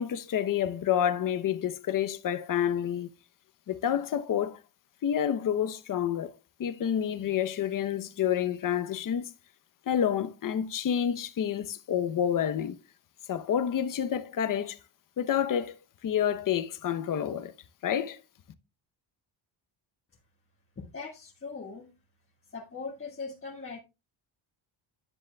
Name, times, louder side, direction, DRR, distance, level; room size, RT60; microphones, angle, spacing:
voice 1, 0.0-3.1 3.7-4.6 5.0-6.3 6.6-9.3 9.9-12.8 13.3-14.8 15.2-15.8 16.0-17.5 17.8-18.2, left 9 dB, 45° left, 0.8 m, -28 dB
voice 2, 20.8-21.9 22.5-23.8, left 4 dB, 25° left, 1.6 m, -40 dB
9.8 x 7.3 x 2.2 m
cardioid pair, 115°, 48 cm